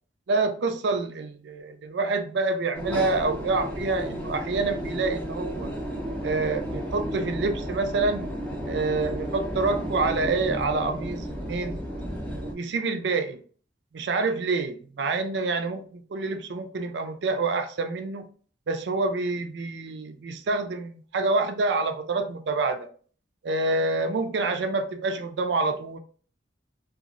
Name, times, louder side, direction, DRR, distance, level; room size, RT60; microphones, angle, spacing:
voice 1, 0.3-5.7 6.2-8.2 8.7-11.8 12.4-13.4 13.9-18.3 18.7-22.9 23.4-26.0, right 3 dB, 65° right, 8 dB, 0.4 m, -27 dB
sound 1, 2.7-12.5, equal, 5° left, 0.5 m, -33 dB
2.9 x 2.4 x 2.5 m, 0.44 s
head